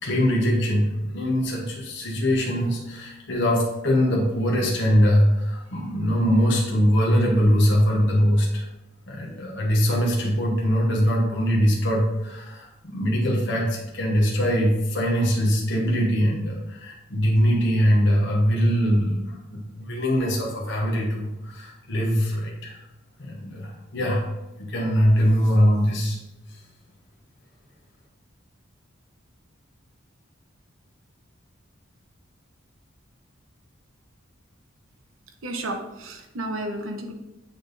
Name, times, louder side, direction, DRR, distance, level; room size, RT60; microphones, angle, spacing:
voice 1, 0.0-8.6 9.1-22.8 23.2-24.3 24.6-26.2, equal, 60° left, -3 dB, 1.2 m, -22 dB
voice 2, 35.4-37.1, right 1 dB, 80° right, 4 dB, 1.0 m, -32 dB
8.8 x 3.5 x 4.0 m, 0.97 s
head